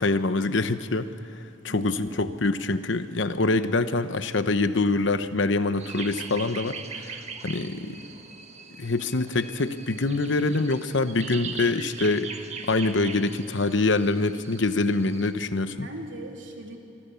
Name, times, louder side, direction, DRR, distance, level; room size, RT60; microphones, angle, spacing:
voice 1, 0.0-7.8 8.8-12.3 12.7-15.9, left 3 dB, 70° left, 11 dB, 1.0 m, -25 dB
voice 2, 1.7-2.3 7.5-8.0 15.8-16.8, right 1 dB, 75° right, 2 dB, 3.2 m, -40 dB
sound 1, 5.8-15.3, right 5 dB, 35° right, 1.5 m, -41 dB
26.0 x 24.0 x 7.1 m, 2.7 s
head